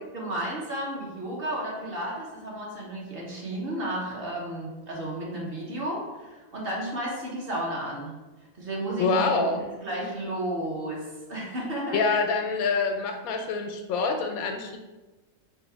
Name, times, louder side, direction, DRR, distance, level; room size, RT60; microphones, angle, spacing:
voice 1, 0.1-8.1 8.5-12.0, right 1 dB, 50° right, -4 dB, 1.0 m, -33 dB
voice 2, 9.0-9.7 11.9-14.8, left 4 dB, 90° left, 5 dB, 1.0 m, -26 dB
3.4 x 2.7 x 4.4 m, 1.2 s
omnidirectional pair, 1.4 m